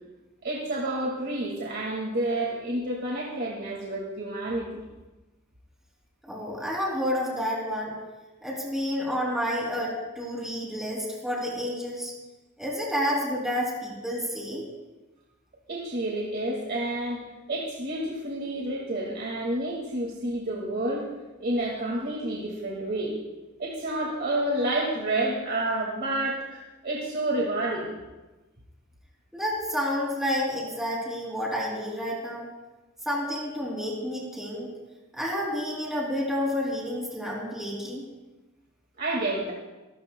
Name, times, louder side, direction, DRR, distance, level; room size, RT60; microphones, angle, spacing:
voice 1, 0.4-4.8 15.7-17.2 17.5-21.1 21.4-23.2 23.6-27.9 39.0-39.5, right 1 dB, 50° right, -3 dB, 2.0 m, -29 dB
voice 2, 6.2-7.9 8.4-12.1 12.6-14.6 29.3-32.5 33.0-34.7 35.1-38.0, equal, ahead, -3 dB, 2.9 m, -30 dB
26.0 x 13.5 x 2.3 m, 1.1 s
head